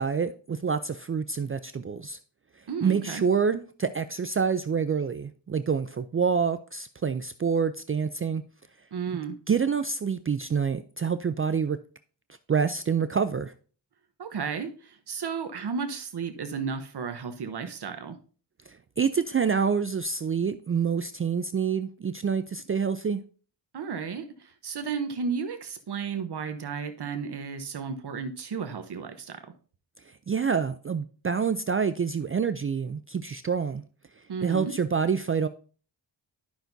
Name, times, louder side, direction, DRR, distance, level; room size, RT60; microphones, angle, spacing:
voice 1, 0.0-2.2 2.8-8.4 9.1-9.2 9.5-11.8 12.5-13.5 18.7-23.2 30.3-33.8 34.4-35.5, right 6 dB, 30° right, 0.4 m, -27 dB
voice 2, 2.7-3.2 8.9-9.4 14.2-18.2 23.7-29.5 34.3-34.7, right 6 dB, 60° right, 0.9 m, -33 dB
11.5 x 5.8 x 2.7 m
cardioid pair, 80°, 44 cm